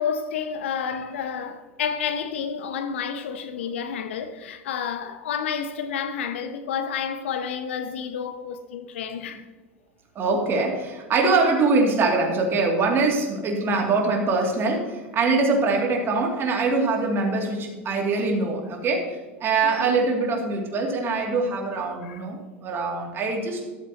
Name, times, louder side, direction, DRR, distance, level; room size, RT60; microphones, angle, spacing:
voice 1, 0.0-9.4 19.8-20.0 22.0-22.2, left 7 dB, 70° left, 0.9 m, -30 dB
voice 2, 10.1-19.1 19.4-23.8, right 3 dB, 35° right, 2.6 m, -23 dB
13.0 x 13.0 x 2.9 m
figure-of-eight pair, 80°, 7 cm